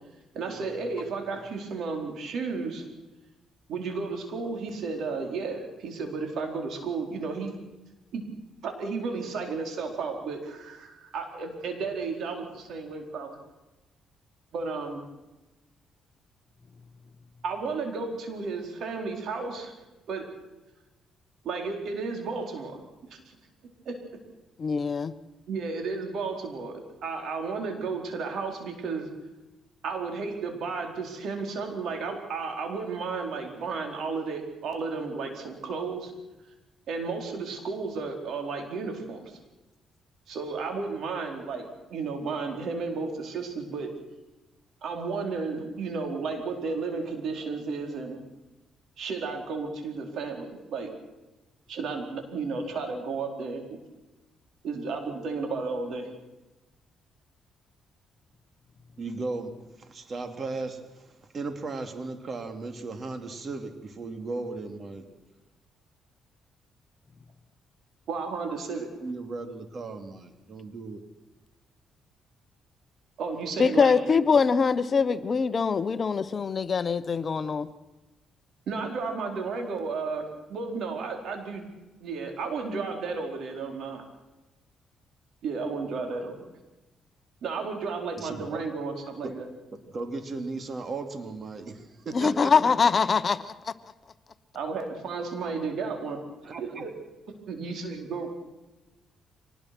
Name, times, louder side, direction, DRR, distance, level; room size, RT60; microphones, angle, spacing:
voice 1, 0.3-2.9 3.7-7.5 8.1-8.2 8.6-13.4 14.5-15.0 17.4-19.7 20.1-20.3 21.4-23.4 23.8-24.0 25.5-29.1 29.8-36.1 36.9-39.4 40.3-44.0 44.8-48.2 49.0-50.9 51.7-53.8 54.6-56.1 68.1-68.9 73.2-74.0 78.7-81.7 82.0-84.0 85.4-86.5 87.4-89.5 94.5-96.2 96.6-96.9 97.5-98.3, right 4 dB, 70° right, 4 dB, 4.5 m, -33 dB
voice 2, 24.6-25.1 73.6-77.7 92.1-93.7, left 5 dB, 40° left, 13 dB, 1.0 m, -23 dB
voice 3, 59.0-65.1 69.0-71.0 88.2-88.6 89.2-89.3 89.9-92.7 96.4-96.8, right 3 dB, 45° right, 7 dB, 2.9 m, -36 dB
24.5 x 19.5 x 6.2 m, 1.1 s
cardioid pair, 90°, 0 cm